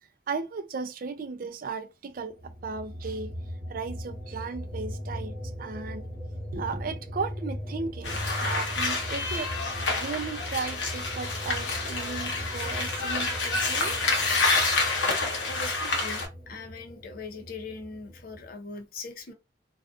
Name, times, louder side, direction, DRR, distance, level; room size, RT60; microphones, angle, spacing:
voice 1, 0.3-3.3 3.7-6.1 6.5-9.5 9.9-14.0, right 4 dB, 50° right, 0.4 m, -35 dB
sound 1, 2.4-18.5, equal, 10° right, 0.9 m, -39 dB
sound 2, 8.0-16.3, left 3 dB, 85° left, 0.9 m, -28 dB
voice 2, 15.5-19.3, left 4 dB, 50° left, 0.5 m, -41 dB
2.5 x 2.3 x 2.4 m
head